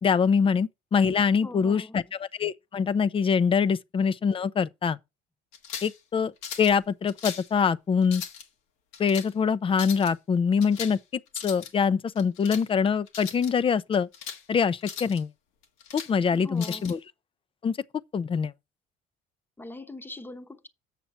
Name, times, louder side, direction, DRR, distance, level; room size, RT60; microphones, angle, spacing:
voice 1, 0.0-5.0 5.8-6.3 6.6-8.2 9.0-11.0 11.4-14.1 14.5-15.3 15.9-17.0 17.6-17.8 18.1-18.5, left 6 dB, 30° left, 0.5 m, -24 dB
voice 2, 1.4-2.1 16.3-17.0 19.6-20.7, left 2 dB, 10° left, 1.0 m, -42 dB
sound 1, 5.5-6.0 6.4-6.7 7.1-7.5 8.0-8.4 8.9-9.3 9.7-10.1 10.6-11.0 11.3-11.7 12.2-12.6 13.1-13.5 13.9-14.4 14.8-15.2 15.6-16.1 16.6-16.9, left 8 dB, 85° left, 1.6 m, -38 dB
7.4 x 6.8 x 4.2 m
cardioid pair, 95°, 19 cm